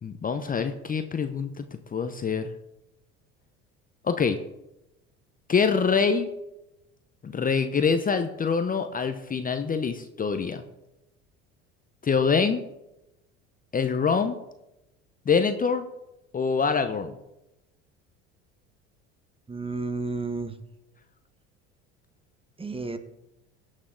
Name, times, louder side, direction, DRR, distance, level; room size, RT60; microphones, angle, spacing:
voice 1, 0.0-1.6 1.9-2.5 4.0-4.4 5.5-6.3 7.2-10.6 12.0-12.6 13.7-14.4 15.3-15.9 16.3-17.1, left 5 dB, 25° left, 9 dB, 0.8 m, -25 dB
voice 2, 19.5-20.5 22.6-23.0, right 3 dB, 15° right, 9 dB, 1.1 m, -31 dB
17.5 x 6.5 x 3.8 m, 0.91 s
hypercardioid pair, 80°, 33 cm